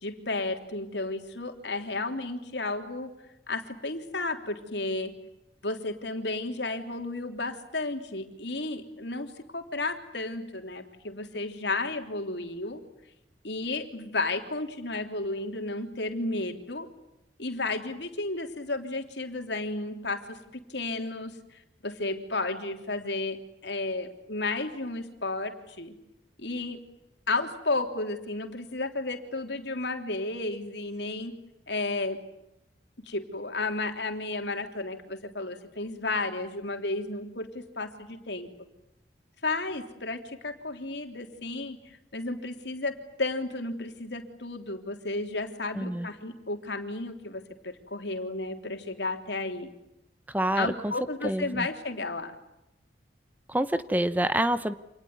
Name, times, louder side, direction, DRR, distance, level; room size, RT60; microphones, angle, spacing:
voice 1, 0.0-3.1 3.5-5.1 5.6-12.8 13.4-16.9 17.4-25.9 26.4-26.8 27.3-31.3 31.7-32.2 33.0-38.5 39.4-49.7 50.5-52.3, left 2 dB, 70° left, 6 dB, 3.3 m, -33 dB
voice 2, 45.8-46.1 50.3-50.7 51.2-51.4 53.5-54.7, right 1 dB, 10° right, 12 dB, 0.9 m, -26 dB
27.5 x 20.0 x 9.7 m, 0.88 s
head